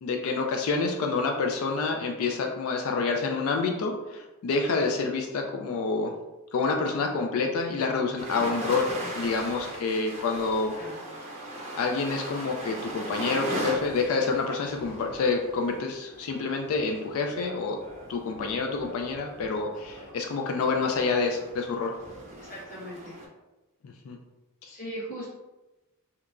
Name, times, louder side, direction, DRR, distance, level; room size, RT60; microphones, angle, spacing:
voice 1, 0.0-6.2 6.5-10.7 11.8-17.8 18.1-22.0 23.8-24.2, left 4 dB, 65° left, 3 dB, 0.3 m, -28 dB
sound 1, 8.2-23.2, right 1 dB, 30° right, 0.5 m, -38 dB
voice 2, 22.4-23.1 24.7-25.3, right 1 dB, 40° left, -9 dB, 1.2 m, -39 dB
2.9 x 2.2 x 2.4 m, 1.0 s
head